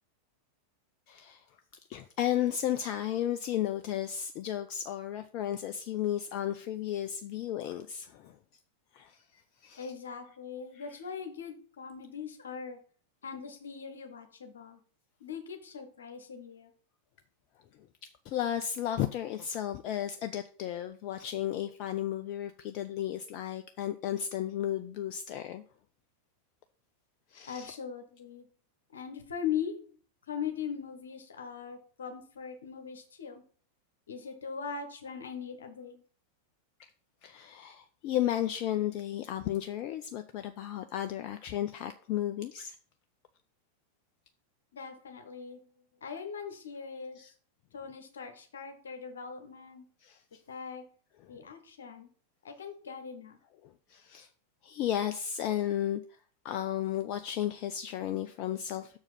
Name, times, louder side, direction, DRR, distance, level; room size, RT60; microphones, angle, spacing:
voice 1, 1.1-1.4 1.9-8.4 8.9-9.9 10.7-10.8 17.8-17.9 18.2-25.6 27.3-27.7 37.2-42.8 47.2-47.3 50.0-50.2 51.3-51.4 53.6-54.3 54.6-56.0 56.4-59.0, left 11 dB, 40° left, 0.5 m, -34 dB
voice 2, 9.8-12.8 13.2-14.8 15.2-16.7 27.5-28.5 28.9-30.0 30.3-33.4 34.1-36.0 44.7-45.7 46.0-47.3 47.7-49.8 50.5-50.9 51.3-52.1 52.4-53.4, left 7 dB, 65° left, 1.3 m, -40 dB
6.5 x 4.8 x 5.8 m
figure-of-eight pair, 90°, 0 cm